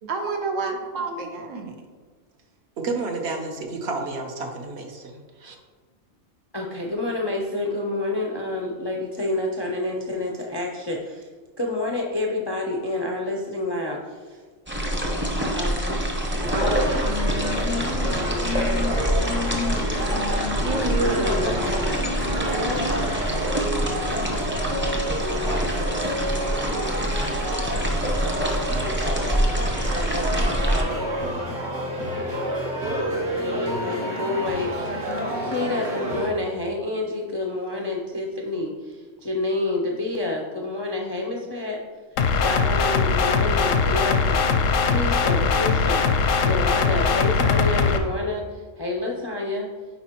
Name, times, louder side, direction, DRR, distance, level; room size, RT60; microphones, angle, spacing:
voice 1, 0.1-1.7 20.6-21.7 30.2-30.5, right 3 dB, 85° right, 3 dB, 1.2 m, -28 dB
voice 2, 2.8-5.6, right 3 dB, 60° right, 2 dB, 1.1 m, -31 dB
voice 3, 6.5-11.3 11.6-14.4 15.4-16.2 16.5-16.8 21.0-22.0 22.4-22.8 33.3-41.8 42.4-46.0 46.4-49.7, left 2 dB, 35° left, 0 dB, 0.4 m, -28 dB
sound 1, 14.7-30.8, equal, 15° right, 0.5 m, -26 dB
sound 2, 16.4-36.3, equal, 40° right, 1.0 m, -29 dB
sound 3, 42.2-48.0, left 5 dB, 90° left, 1.0 m, -21 dB
9.6 x 4.1 x 3.0 m, 1.4 s
omnidirectional pair, 1.3 m